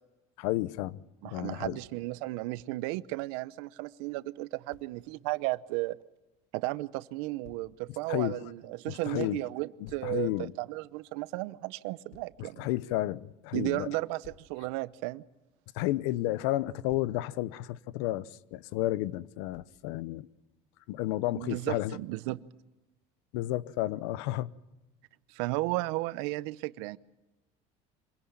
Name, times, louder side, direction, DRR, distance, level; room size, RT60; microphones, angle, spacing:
voice 1, 0.4-1.0 1.3-1.8 8.1-8.4 8.9-9.4 10.0-10.5 12.4-13.9 15.8-20.3 20.9-22.0 23.3-24.5, left 16 dB, 85° left, 0.8 m, -32 dB
voice 2, 1.2-6.0 6.5-12.7 13.5-15.2 21.4-22.4 25.3-27.0, right 20 dB, 85° right, 0.8 m, -34 dB
Thump thud, 1.6-1.9 4.7-4.9 7.4-7.7 9.8-10.2 12.1-12.4 14.2-14.6 16.6-17.2 19.5-19.8, left 9 dB, 60° left, 1.4 m, -55 dB
25.0 x 17.0 x 8.8 m
cardioid pair, 145°, 14 cm